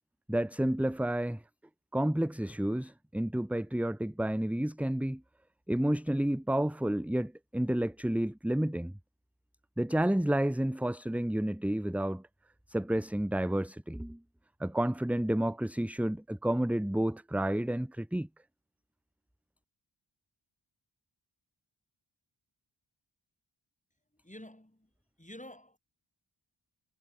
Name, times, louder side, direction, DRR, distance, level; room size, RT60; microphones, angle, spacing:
voice 1, 0.3-1.4 1.9-5.2 5.7-8.9 9.8-12.2 12.7-14.2 14.6-18.3, right 1 dB, 5° right, 0.7 m, -30 dB
voice 2, 24.2-24.9 25.2-25.8, left 1 dB, 15° left, 5.6 m, -49 dB
wide cardioid pair, 45°, 48 cm